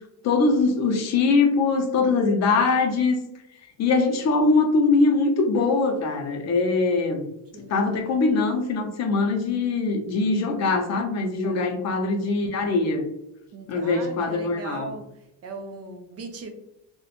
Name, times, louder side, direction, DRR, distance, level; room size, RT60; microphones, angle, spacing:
voice 1, 0.2-3.2 3.8-7.2 7.6-13.0 13.7-14.9, left 3 dB, 45° left, 4 dB, 0.5 m, -22 dB
voice 2, 2.0-2.7 7.5-7.8 8.1-8.2 11.4-11.6 12.2-12.3 13.5-15.0 15.4-16.5, right 3 dB, 40° right, 5 dB, 0.4 m, -39 dB
2.8 x 2.1 x 2.4 m, 0.86 s
cardioid pair, 110°, 38 cm